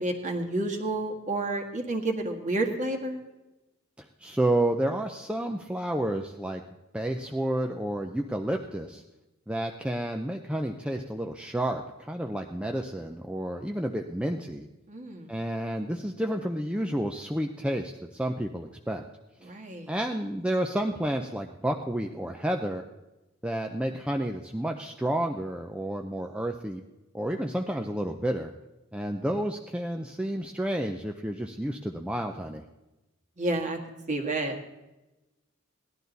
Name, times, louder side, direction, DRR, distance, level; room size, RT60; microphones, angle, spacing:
voice 1, 0.0-3.2 14.9-15.3 19.4-19.9 33.4-33.8 34.1-34.6, right 2 dB, 35° right, 3 dB, 1.7 m, -30 dB
voice 2, 4.0-6.6 6.9-9.0 9.5-14.7 15.3-19.0 19.4-19.5 19.9-22.8 23.4-26.8 27.1-28.5 28.9-32.6, right 1 dB, 5° right, 3 dB, 0.5 m, -30 dB
17.5 x 11.5 x 4.0 m, 1.0 s
head